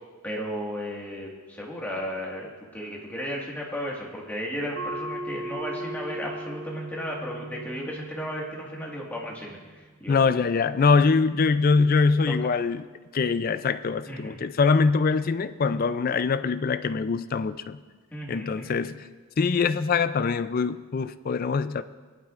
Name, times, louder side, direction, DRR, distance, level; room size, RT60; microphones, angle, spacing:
voice 1, 0.2-9.6 10.0-10.2 14.0-14.4 18.1-18.8, equal, 10° left, -3 dB, 1.7 m, -34 dB
sound 1, 4.8-9.9, right 1 dB, 75° right, 4.5 m, -38 dB
voice 2, 10.1-12.9 13.1-17.8 18.3-19.0 19.4-21.8, left 4 dB, 40° left, 13 dB, 0.3 m, -23 dB
18.5 x 11.5 x 2.5 m, 1.4 s
head